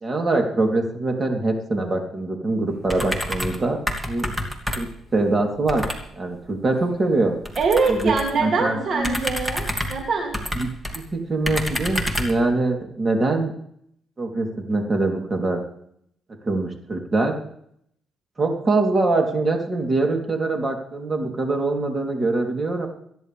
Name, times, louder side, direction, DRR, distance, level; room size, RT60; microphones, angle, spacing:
voice 1, 0.0-3.8 4.1-4.3 4.8-4.9 5.1-5.8 6.1-7.3 7.9-8.1 8.4-8.8 10.6-10.7 10.9-13.5 14.2-15.6 16.4-17.4 18.4-22.9, right 2 dB, 30° right, 2 dB, 3.5 m, -23 dB
sound 1, 2.9-3.6 3.9-5.0 5.7-6.0 7.4-8.4 9.0-11.0 11.5-12.4, equal, 10° right, 2.6 m, -28 dB
voice 2, 7.6-10.4, right 4 dB, 55° right, 1 dB, 2.8 m, -23 dB
26.5 x 10.5 x 3.6 m, 0.69 s
cardioid pair, 90°, 0 cm